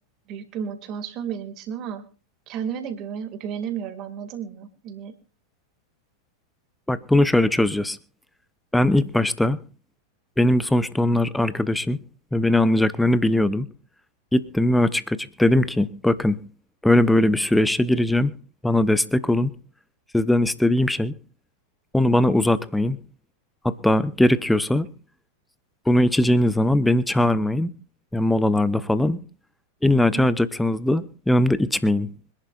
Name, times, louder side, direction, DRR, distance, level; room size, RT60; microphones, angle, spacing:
voice 1, 0.3-2.0 2.5-5.2 30.0-30.3, right 8 dB, 35° right, 2.1 m, -32 dB
voice 2, 6.9-8.0 8.7-9.6 10.4-12.0 12.3-13.7 14.3-16.4 16.8-18.3 18.6-19.5 20.1-21.1 21.9-23.0 23.6-24.9 25.9-27.7 28.1-29.2 29.8-32.1, left 1 dB, 5° left, 0.8 m, -20 dB
25.5 x 11.0 x 2.4 m
figure-of-eight pair, 90°, 0 cm